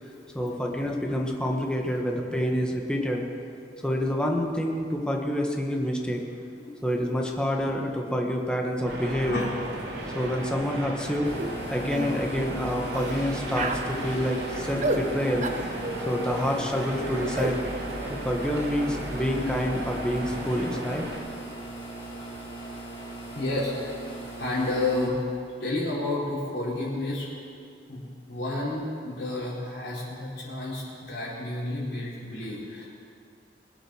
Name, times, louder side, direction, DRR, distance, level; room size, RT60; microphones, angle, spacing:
voice 1, 0.3-3.2 3.8-6.2 6.8-9.5 10.1-11.3 11.7-15.5 16.0-17.6 18.1-21.1, equal, 5° left, 0 dB, 1.5 m, -27 dB
voice 2, 6.6-7.1 9.3-9.5 10.4-10.5 23.3-23.7 24.4-25.2 25.6-27.3 27.9-32.9, left 2 dB, 70° left, -7 dB, 4.4 m, -31 dB
sound 1, 8.8-21.2, right 1 dB, 75° right, 2.8 m, -35 dB
sound 2, 11.2-25.1, right 2 dB, 30° left, 4.0 m, -40 dB
sound 3, 11.4-11.5 11.9-12.1 12.9-13.2 13.5-13.9 14.8-15.0 15.4-15.7 17.3-17.6, right 2 dB, 45° right, 1.0 m, -29 dB
21.0 x 8.9 x 6.5 m, 2.3 s
head